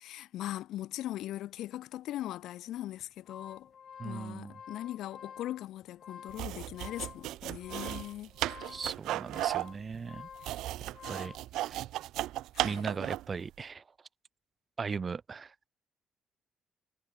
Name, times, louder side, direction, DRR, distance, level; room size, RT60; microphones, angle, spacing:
voice 1, 0.0-3.7 4.0-8.3 10.4-10.5 12.5-12.9, left 13 dB, 75° left, 2.5 m, -40 dB
sound 1, 3.0-11.5, left 7 dB, 55° left, 4.6 m, -50 dB
voice 2, 4.0-4.5 8.7-10.3 11.1-11.3 11.6-11.8 12.6-13.8 14.8-15.5, right 5 dB, 40° right, 4.7 m, -38 dB
sound 2, 6.3-13.4, right 15 dB, 75° right, 2.0 m, -35 dB
hypercardioid pair, 50°, 0 cm